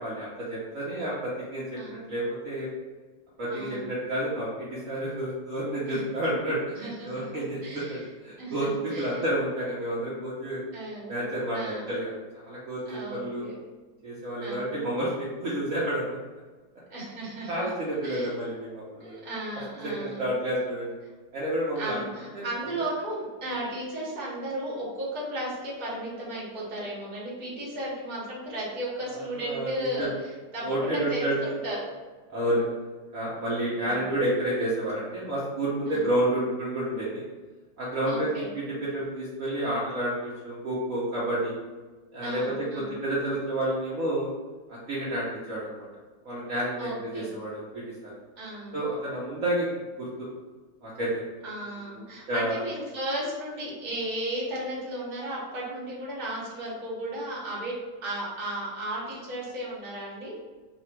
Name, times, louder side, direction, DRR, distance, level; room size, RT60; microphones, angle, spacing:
voice 1, 0.0-2.7 3.4-10.6 11.1-13.4 14.0-16.2 17.5-19.2 19.8-20.9 21.3-22.0 22.3-22.4 29.1-30.1 30.6-31.3 32.3-32.7 33.1-37.2 37.8-38.3 38.5-41.5 42.1-44.3 44.7-45.9 46.2-48.1 48.7-49.7 50.0-50.3 50.8-51.2 51.7-52.6, right 1 dB, 60° right, -7 dB, 1.2 m, -30 dB
voice 2, 1.8-2.1 3.5-3.9 5.9-6.0 6.7-7.2 7.6-8.0 8.4-9.2 10.7-11.1 11.5-11.8 12.9-13.6 14.4-14.9 16.9-17.7 18.0-18.3 19.0-20.4 21.8-31.9 35.9-36.0 38.0-38.5 42.2-43.0 46.8-47.3 48.4-48.8 51.4-57.7 58.0-60.3, right 1 dB, 30° right, -6 dB, 1.2 m, -35 dB
4.1 x 2.4 x 4.3 m, 1.3 s
omnidirectional pair, 1.8 m